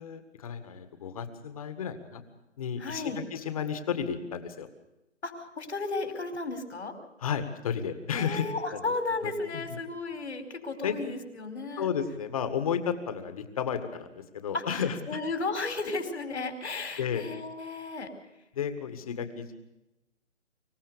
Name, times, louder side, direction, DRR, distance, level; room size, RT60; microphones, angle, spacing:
voice 1, 0.0-2.2 2.6-4.7 7.2-8.8 9.2-9.6 10.8-11.1 11.8-15.2 17.0-17.3 18.5-19.5, left 7 dB, 30° left, 10 dB, 1.9 m, -33 dB
voice 2, 2.8-3.2 5.2-7.0 8.2-11.9 14.5-18.1, left 3 dB, 70° left, 7 dB, 4.7 m, -34 dB
25.5 x 16.0 x 6.9 m, 0.92 s
hypercardioid pair, 165°, 35 cm